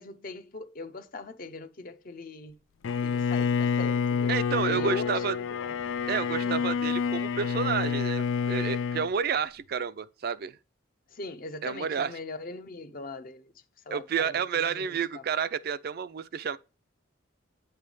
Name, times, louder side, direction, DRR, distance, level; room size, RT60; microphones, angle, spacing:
voice 1, 0.0-2.6 3.0-4.3 4.7-5.7 6.4-6.6 11.1-13.5 13.9-15.2, left 2 dB, 45° left, 0.7 m, -41 dB
Bowed string instrument, 2.8-9.1, left 6 dB, 80° left, 0.4 m, -28 dB
voice 2, 4.3-5.4 6.1-10.6 11.6-12.1 13.9-16.6, right 6 dB, 50° right, 0.4 m, -30 dB
8.9 x 3.3 x 5.3 m
head